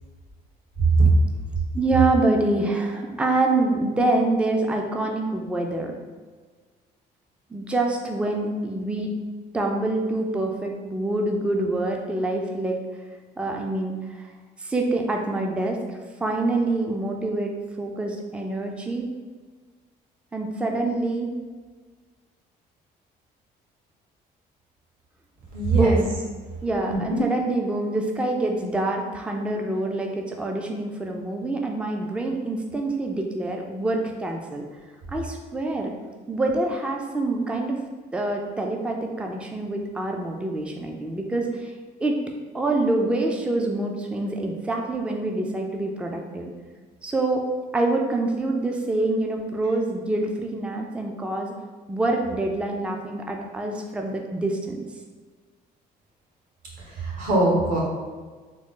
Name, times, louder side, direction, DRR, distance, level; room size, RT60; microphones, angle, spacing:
voice 1, 1.7-5.9 7.5-9.1 9.5-12.8 13.4-14.3 14.6-19.1 20.3-21.3 25.7-26.1 26.6-34.7 35.1-35.9 36.3-37.8 38.1-41.7 42.0-42.2 42.5-46.5 47.0-47.4 47.7-51.5 51.9-54.8, right 2 dB, 5° right, 1 dB, 0.4 m, -26 dB
voice 2, 25.5-25.9 26.9-27.3 56.8-57.8, right 3 dB, 55° right, -4 dB, 1.3 m, -21 dB
3.6 x 2.1 x 3.7 m, 1.4 s
cardioid pair, 110°, 17 cm